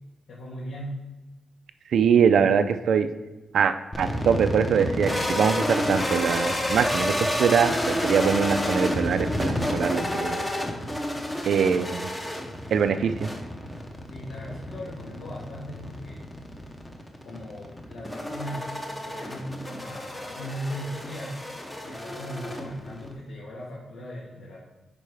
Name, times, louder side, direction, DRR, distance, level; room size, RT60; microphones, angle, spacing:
voice 1, 0.3-1.0 14.1-16.3 17.2-18.7 19.1-21.4 21.8-24.6, equal, 75° left, -6 dB, 1.7 m, -38 dB
voice 2, 1.9-3.1 3.5-10.4 11.5-12.1 12.7-13.3, right 7 dB, 65° right, 10 dB, 0.5 m, -23 dB
sound 1, 3.9-23.1, left 1 dB, 10° left, 0.8 m, -30 dB
10.0 x 4.2 x 3.5 m, 1.1 s
wide cardioid pair, 165°, 0 cm